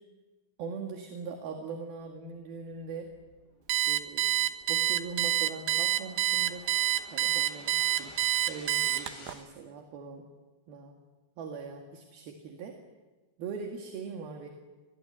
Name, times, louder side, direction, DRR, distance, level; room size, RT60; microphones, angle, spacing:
voice 1, 0.6-3.1 3.9-4.3 4.7-6.8 7.1-8.1 8.5-10.3 10.7-10.9 11.4-12.8 13.4-14.5, right 5 dB, 60° right, 3 dB, 3.4 m, -41 dB
sound 1, 2.4-9.3, left 2 dB, 70° left, 9.6 m, -53 dB
Alarm, 3.7-9.3, right 14 dB, 75° right, 2.2 m, -27 dB
26.0 x 20.0 x 9.9 m, 1.2 s
omnidirectional pair, 5.5 m